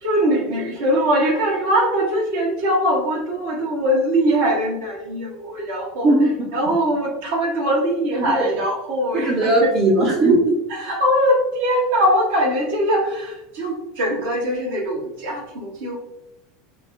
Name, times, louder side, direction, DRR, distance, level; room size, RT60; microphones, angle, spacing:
voice 1, 0.0-6.1 6.5-9.7 10.7-16.0, equal, 65° right, -1 dB, 1.0 m, -21 dB
voice 2, 6.0-6.5 8.1-8.4 9.1-10.6, right 2 dB, 45° right, -3 dB, 0.7 m, -18 dB
4.8 x 2.1 x 2.6 m, 0.89 s
figure-of-eight pair, 80°, 0 cm